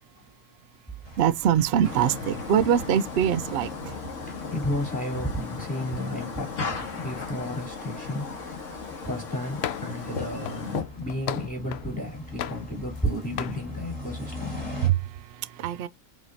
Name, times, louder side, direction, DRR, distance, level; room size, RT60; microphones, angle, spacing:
sound 1, 1.0-14.9, left 1 dB, 30° left, 2.5 m, -43 dB
voice 1, 1.2-4.0 14.8-15.9, right 9 dB, 80° right, 0.5 m, -24 dB
sound 2, 1.8-10.8, left 5 dB, 55° left, 1.7 m, -36 dB
voice 2, 4.3-8.6 9.0-14.6, left 1 dB, 5° left, 2.7 m, -32 dB
sound 3, 9.6-10.0 10.5-11.9 12.4-13.1 13.4-13.6, left 10 dB, 75° left, 0.5 m, -35 dB
5.0 x 3.8 x 2.6 m
omnidirectional pair, 1.6 m